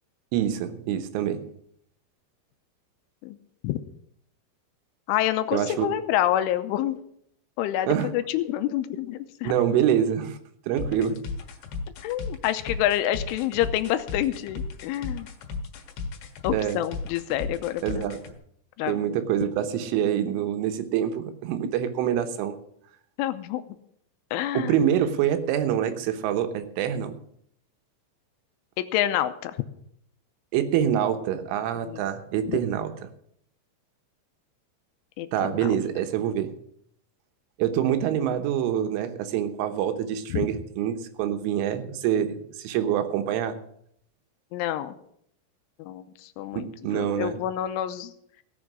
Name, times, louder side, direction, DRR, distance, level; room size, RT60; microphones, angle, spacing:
voice 1, 0.3-1.5 5.5-5.9 7.9-8.1 9.4-10.4 10.7-11.2 16.5-16.8 17.8-18.2 18.9-22.6 24.6-27.2 30.5-32.9 35.3-36.5 37.6-43.6 46.5-47.4, right 10 dB, 80° right, 8 dB, 3.5 m, -26 dB
voice 2, 5.1-7.0 7.6-9.5 12.0-15.3 16.4-18.0 18.8-19.2 23.2-23.6 24.3-24.8 28.8-29.6 31.8-32.0 32.5-32.6 35.2-35.7 40.3-40.5 44.5-45.0 45.8-48.1, left 12 dB, 90° left, 10 dB, 3.2 m, -28 dB
sound 1, 10.8-18.3, left 5 dB, 70° left, 3.6 m, -35 dB
18.0 x 7.1 x 6.2 m, 0.70 s
omnidirectional pair, 5.6 m